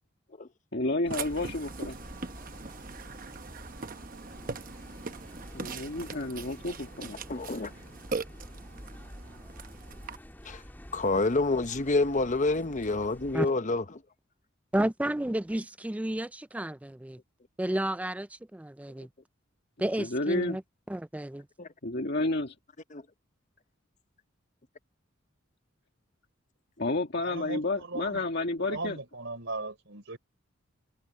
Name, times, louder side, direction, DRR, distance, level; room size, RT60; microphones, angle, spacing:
voice 1, 0.7-2.0 5.5-7.2 20.0-20.6 21.8-22.6 26.8-29.0, left 2 dB, 55° left, 1.8 m, -31 dB
sound 1, 1.0-13.4, equal, 10° left, 2.3 m, -48 dB
Burping eructation, 1.1-10.2, right 4 dB, 45° right, 0.9 m, -41 dB
voice 2, 7.3-7.7 10.4-10.6 10.9-13.8 21.6-21.7 22.9-23.0, left 3 dB, 40° left, 0.9 m, -27 dB
voice 3, 14.7-17.2 17.6-19.1 19.8-20.6 20.9-21.5, right 1 dB, 5° right, 0.4 m, -31 dB
voice 4, 27.2-28.3 28.6-30.2, right 3 dB, 65° right, 4.3 m, -38 dB
head